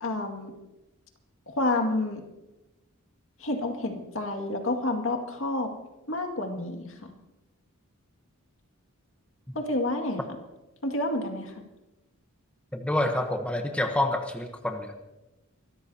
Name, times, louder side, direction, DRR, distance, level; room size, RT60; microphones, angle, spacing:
voice 1, 0.0-0.5 1.5-2.2 3.4-5.7 6.1-7.1 9.5-10.2 10.8-11.5, left 2 dB, 65° left, 3 dB, 2.1 m, -29 dB
voice 2, 12.7-15.0, left 1 dB, 5° left, 4 dB, 1.0 m, -28 dB
24.5 x 13.5 x 2.8 m, 0.99 s
head